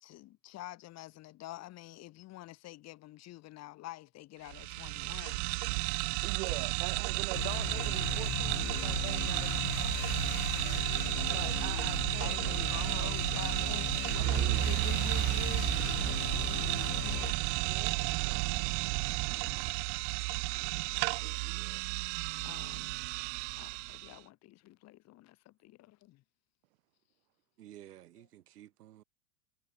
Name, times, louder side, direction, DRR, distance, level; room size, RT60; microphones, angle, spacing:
voice 1, 0.0-5.4 6.5-6.7 10.2-11.3 12.2-17.2 21.1-21.6 22.4-22.9 23.6-26.2, left 16 dB, 35° left, 1.7 m, -48 dB
sound 1, 4.5-24.2, right 32 dB, 50° right, 0.8 m, -33 dB
voice 2, 6.2-9.9 11.3-13.2 16.5-16.8 17.6-17.9 21.0-21.4, right 20 dB, 65° right, 1.8 m, -44 dB
voice 3, 6.9-7.3 10.5-11.5 14.2-14.6 20.5-21.8 27.6-29.0, right 12 dB, 85° right, 4.7 m, -52 dB
sound 2, 7.3-17.3, left 22 dB, 60° left, 1.1 m, -38 dB
Truck / Idling, 14.2-19.7, right 12 dB, 30° right, 1.8 m, -35 dB
supercardioid pair, 125°, 45 cm